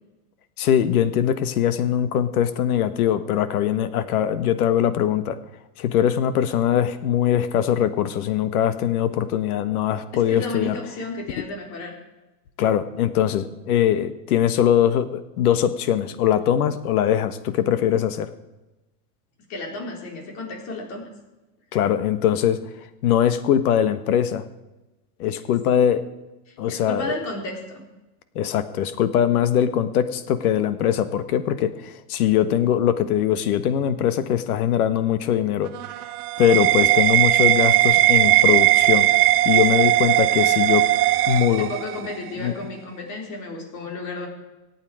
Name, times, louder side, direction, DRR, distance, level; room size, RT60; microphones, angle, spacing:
voice 1, 0.6-5.4 5.8-10.8 12.6-18.3 21.7-22.6 23.0-24.4 25.2-26.0 26.6-27.2 28.3-35.7 36.4-39.1 39.4-40.8 41.3-41.7 42.4-42.5, left 10 dB, 75° left, 12 dB, 1.5 m, -21 dB
voice 2, 10.1-12.0 19.5-21.0 25.3-25.4 26.5-27.8 41.6-44.3, left 2 dB, 35° left, 1 dB, 4.0 m, -33 dB
sound 1, 35.7-42.1, right 15 dB, 90° right, 0.9 m, -18 dB
25.0 x 8.9 x 4.9 m, 1.0 s
supercardioid pair, 160°, 45 cm